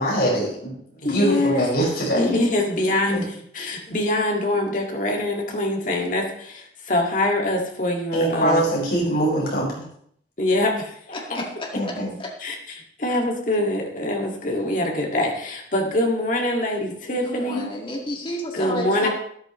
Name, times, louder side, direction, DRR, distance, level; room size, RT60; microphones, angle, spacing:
voice 1, 0.0-2.2 3.1-3.2 8.1-9.8 11.7-12.1, right 1 dB, 60° left, -4 dB, 5.2 m, -23 dB
voice 2, 1.0-1.7 2.2-8.6 10.4-11.4 12.4-17.7 18.5-19.1, left 1 dB, 45° left, 0 dB, 2.1 m, -24 dB
voice 3, 11.1-12.3 17.1-19.1, left 1 dB, 30° left, -1 dB, 1.9 m, -32 dB
13.0 x 11.0 x 3.1 m, 0.66 s
head